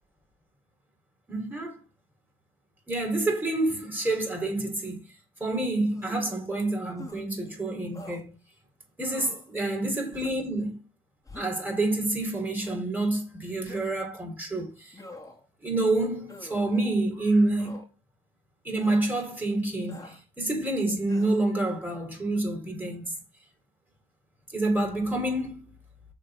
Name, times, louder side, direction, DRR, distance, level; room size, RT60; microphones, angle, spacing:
voice 1, 1.3-1.8 2.9-5.0 5.4-8.4 9.0-10.8 11.3-14.9 15.6-17.8 18.6-23.2 24.5-25.7, right 2 dB, 10° right, 3.8 m, -28 dB
sound 1, 5.9-6.4 7.0-7.2 7.9-8.2 9.0-9.5 10.1-10.5 11.2-11.7 12.6-12.8 13.7-14.1 14.9-15.4 16.3-16.6 17.6-17.9 18.8-19.0 19.9-20.2 21.1-21.4, left 2 dB, 15° left, 2.2 m, -45 dB
6.6 x 3.9 x 6.3 m
cardioid pair, 90°, 20 cm